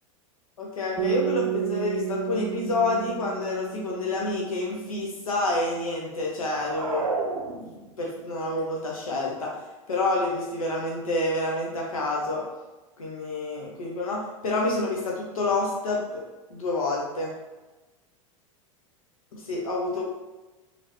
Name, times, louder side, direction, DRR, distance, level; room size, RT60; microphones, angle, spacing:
voice 1, 0.6-7.0 7.5-7.6 8.0-9.6 9.9-12.4 13.0-16.2 16.5-17.3 19.3-20.0, left 2 dB, 90° left, -2 dB, 0.6 m, -28 dB
sound 1, 1.0-5.2, right 15 dB, 35° right, 0.4 m, -32 dB
sound 2, 6.5-8.1, right 3 dB, 85° right, 0.6 m, -31 dB
2.8 x 2.6 x 3.0 m, 1.1 s
hypercardioid pair, 90°, 17 cm